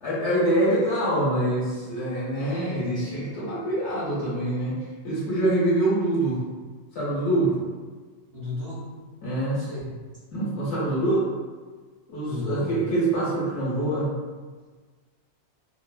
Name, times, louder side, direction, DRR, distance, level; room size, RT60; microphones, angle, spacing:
voice 1, 0.0-4.8 5.0-6.4 6.9-7.6 9.2-9.6 10.3-11.3 12.1-14.1, right 1 dB, 75° left, -8 dB, 1.3 m, -25 dB
voice 2, 8.3-8.9 9.4-9.9 12.2-12.7, left 2 dB, 60° right, -9 dB, 1.6 m, -34 dB
3.5 x 2.0 x 2.2 m, 1.4 s
omnidirectional pair, 1.2 m